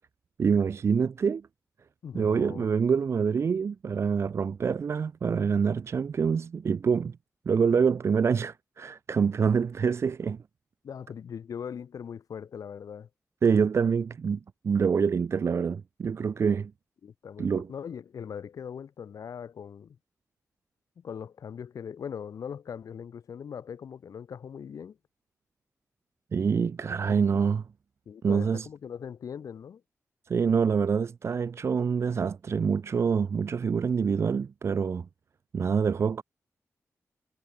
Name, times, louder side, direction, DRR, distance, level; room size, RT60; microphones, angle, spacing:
voice 1, 0.4-1.4 2.1-7.2 7.5-10.4 13.4-16.7 17.4-17.7 26.3-27.6 28.2-28.7 30.3-35.1 35.5-36.2, right 6 dB, 55° right, 0.5 m, -26 dB
voice 2, 2.0-2.6 10.8-13.1 17.0-20.0 21.0-25.0 27.0-27.2 28.0-29.8, left 7 dB, 90° left, 1.7 m, -40 dB
wide cardioid pair, 155°, 6 cm